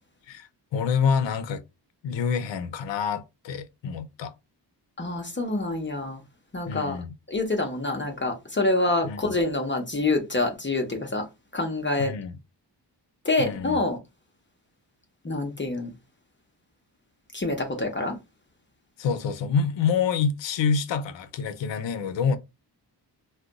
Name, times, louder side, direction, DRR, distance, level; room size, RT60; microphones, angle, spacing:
voice 1, 0.3-1.6 2.0-4.3 6.7-7.1 9.0-9.3 12.0-12.4 13.4-13.8 19.0-22.4, left 6 dB, 75° left, 0.6 m, -27 dB
voice 2, 5.0-6.2 6.5-7.0 7.3-11.2 11.5-12.1 13.2-14.0 15.2-15.9 17.3-18.1, left 2 dB, 25° left, 0.8 m, -26 dB
2.5 x 2.2 x 3.8 m
cardioid pair, 90°, 44 cm